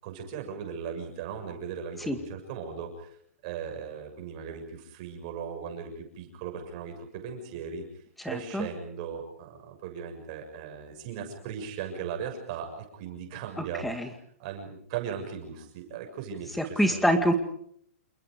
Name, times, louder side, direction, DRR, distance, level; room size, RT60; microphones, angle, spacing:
voice 1, 0.0-3.1 3.4-14.1 14.4-17.3, right 7 dB, 30° right, 4 dB, 7.0 m, -38 dB
voice 2, 8.2-8.7 13.6-14.1 16.8-17.3, equal, ahead, 7 dB, 2.2 m, -25 dB
29.0 x 27.0 x 5.1 m, 0.66 s
hypercardioid pair, 175°, 7 cm